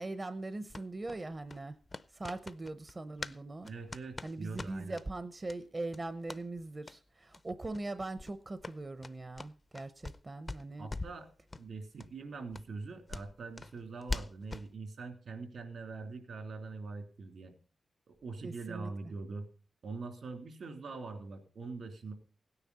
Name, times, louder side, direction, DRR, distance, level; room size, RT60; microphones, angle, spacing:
voice 1, 0.0-1.8 2.1-3.7 4.2-10.9 18.4-18.9, right 2 dB, 35° right, 0.8 m, -41 dB
sound 1, 0.7-3.4 3.6-5.1 5.5-5.6 5.9-6.4 6.8-7.0 7.3-7.4 7.7-7.9 8.2-10.2 10.5-11.2 11.5-11.7 12.0-12.1 12.5-14.7, left 3 dB, 35° left, 0.6 m, -43 dB
voice 2, 3.7-5.0 10.8-11.3 11.6-17.5 18.1-19.5 19.8-22.1, right 4 dB, 80° right, 3.2 m, -43 dB
17.0 x 9.8 x 4.1 m
cardioid pair, 65°, 0 cm